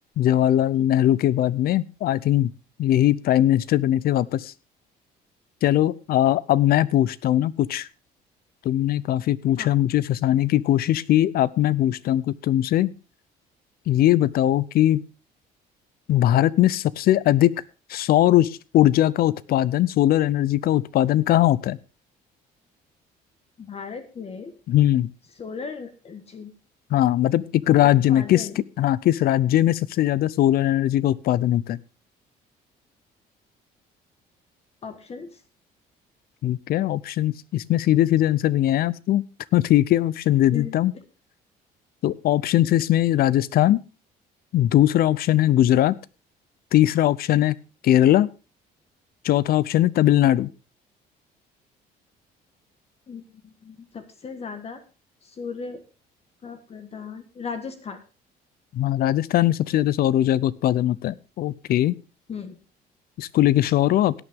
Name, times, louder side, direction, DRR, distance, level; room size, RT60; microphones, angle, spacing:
voice 1, 0.2-2.5 2.8-4.5 5.6-7.9 8.6-12.9 13.9-15.0 16.1-17.5 17.9-21.8 24.7-25.1 26.9-28.5 28.8-31.8 36.4-39.2 39.5-40.9 42.0-43.8 44.5-45.9 46.7-47.5 47.8-48.3 49.2-50.5 58.7-62.0 63.2-64.1, left 13 dB, 65° left, 21 dB, 0.6 m, -20 dB
voice 2, 23.6-24.5 25.4-26.5 27.7-28.6 34.8-35.4 40.5-40.7 53.1-54.8 55.2-55.8 56.4-58.0 62.3-62.6, left 5 dB, 35° left, 8 dB, 1.5 m, -36 dB
17.0 x 9.0 x 3.6 m, 0.32 s
cardioid pair, 110°, 17 cm